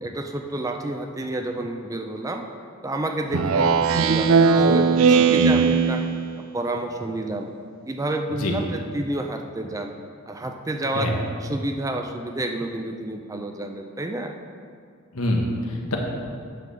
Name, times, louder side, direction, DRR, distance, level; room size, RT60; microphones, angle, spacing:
voice 1, 0.0-2.4 2.8-6.0 6.4-7.5 7.9-10.0 10.3-11.1 11.4-14.3, right 1 dB, 15° right, 4 dB, 0.4 m, -29 dB
Speech synthesizer, 3.3-6.4, right 5 dB, 75° right, 0.4 m, -18 dB
voice 2, 15.1-16.0, left 1 dB, 85° left, 0 dB, 1.3 m, -25 dB
9.1 x 3.8 x 6.9 m, 2.2 s
head